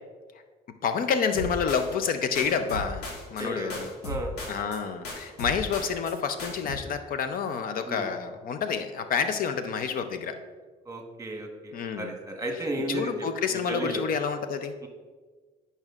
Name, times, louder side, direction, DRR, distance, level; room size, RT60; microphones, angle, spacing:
voice 1, 0.8-3.9 4.5-10.3 11.7-12.1 12.9-14.8, left 6 dB, 55° left, 8 dB, 0.5 m, -29 dB
sound 1, 1.3-2.1 2.4-3.5 3.7-4.8 5.0-6.1 6.4-6.8, left 1 dB, 85° left, 1.3 m, -36 dB
voice 2, 3.4-4.5 7.8-8.1 10.8-13.3 13.7-14.0 14.8-14.9, right 1 dB, 20° right, 2 dB, 1.2 m, -34 dB
10.5 x 5.4 x 2.4 m, 1.4 s
cardioid pair, 110°, 17 cm